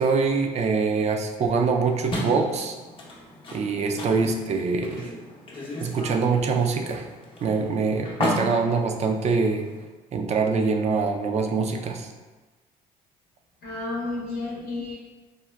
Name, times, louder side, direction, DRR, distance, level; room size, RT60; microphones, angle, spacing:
voice 1, 0.0-2.8 3.5-5.1 5.8-7.1 7.4-9.7 10.1-12.1, right 4 dB, 40° right, 4 dB, 0.3 m, -24 dB
sound 1, 2.1-9.9, left 1 dB, 30° left, 0.7 m, -34 dB
voice 2, 13.6-14.9, left 2 dB, 65° left, -4 dB, 0.7 m, -32 dB
3.5 x 2.1 x 2.2 m, 1.2 s
supercardioid pair, 80°, 17 cm